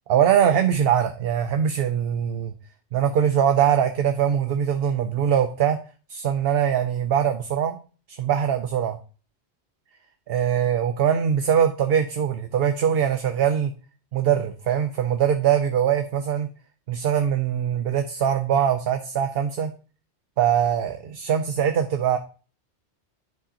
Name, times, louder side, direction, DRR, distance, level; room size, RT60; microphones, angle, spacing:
voice 1, 0.1-2.5 2.9-5.8 6.1-7.8 8.1-9.0 10.3-13.7 14.1-16.5 16.9-19.7 20.4-22.2, right 9 dB, 65° right, 7 dB, 0.8 m, -22 dB
10.5 x 5.0 x 2.8 m, 0.38 s
omnidirectional pair, 1.1 m